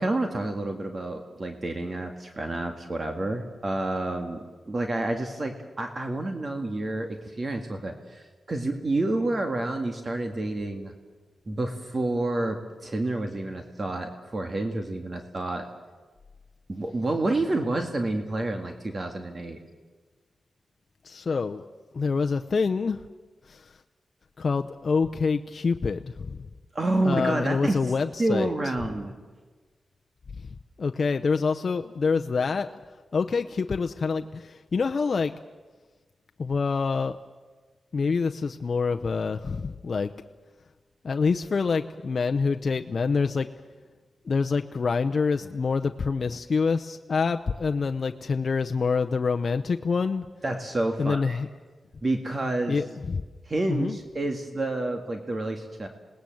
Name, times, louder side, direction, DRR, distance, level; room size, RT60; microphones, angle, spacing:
voice 1, 0.0-4.4 4.7-10.9 11.5-15.7 16.7-19.6 26.7-27.9 28.2-29.1 50.4-51.4 52.0-52.8 53.5-55.9, right 2 dB, 40° right, 4 dB, 2.0 m, -29 dB
voice 2, 21.0-21.7 21.9-23.0 23.5-23.7 24.4-26.4 27.0-28.5 30.4-30.5 30.8-32.8 33.1-35.3 36.4-37.2 37.9-40.1 41.0-43.5 44.3-50.3 51.0-51.5 52.7-53.2 53.7-54.0, left 5 dB, 55° left, 6 dB, 0.7 m, -26 dB
27.5 x 19.0 x 7.8 m, 1.4 s
wide cardioid pair, 95°, 0 cm